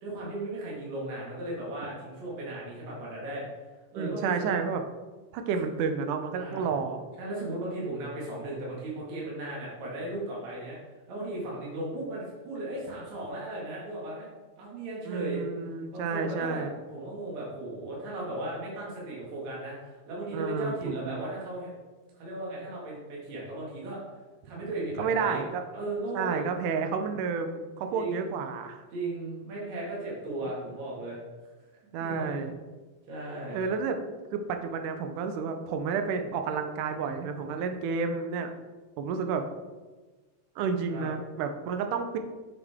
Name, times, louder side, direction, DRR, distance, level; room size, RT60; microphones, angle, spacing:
voice 1, 0.0-3.5 3.9-4.6 5.4-5.5 6.4-6.7 7.2-10.8 11.1-14.3 14.6-15.4 15.9-16.7 16.9-21.7 22.2-24.0 24.4-25.4 25.7-26.5 27.9-28.3 28.9-31.2 32.0-32.4 33.1-33.6 40.9-41.1, right 1 dB, 65° right, -5 dB, 3.1 m, -36 dB
voice 2, 4.0-4.8 5.3-7.0 15.1-16.7 20.3-21.3 25.0-25.6 26.1-28.8 31.9-32.5 33.5-34.0 34.3-38.5 39.0-39.5 40.6-42.2, right 5 dB, 85° right, 6 dB, 2.2 m, -30 dB
7.3 x 7.3 x 3.5 m, 1.3 s
omnidirectional pair, 3.6 m